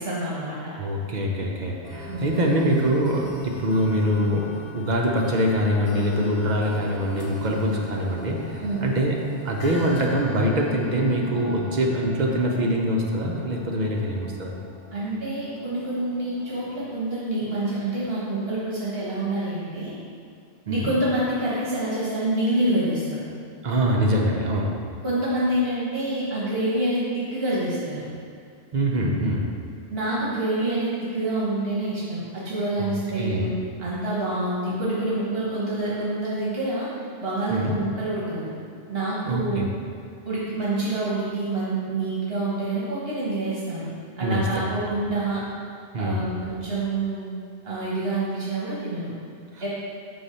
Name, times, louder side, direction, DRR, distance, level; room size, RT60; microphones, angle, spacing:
voice 1, 0.0-0.7 2.1-2.4 8.6-8.8 14.9-19.9 20.6-23.2 25.0-28.1 29.9-33.5 33.8-36.9 37.2-38.5 38.9-39.7 40.2-43.9 44.2-45.4 45.9-47.3 47.6-49.1 49.6-49.7, right 1 dB, 65° right, -7 dB, 1.3 m, -27 dB
voice 2, 0.8-9.1 9.4-14.6 20.7-20.9 23.6-24.8 28.7-29.5 32.8-33.5 37.5-37.7 39.2-39.7 44.2-44.5 45.9-46.3 49.5-49.7, equal, 50° right, -1 dB, 0.7 m, -24 dB
sound 1, 1.8-17.1, left 2 dB, 85° left, 1.1 m, -41 dB
5.6 x 3.1 x 5.5 m, 2.3 s
omnidirectional pair, 1.1 m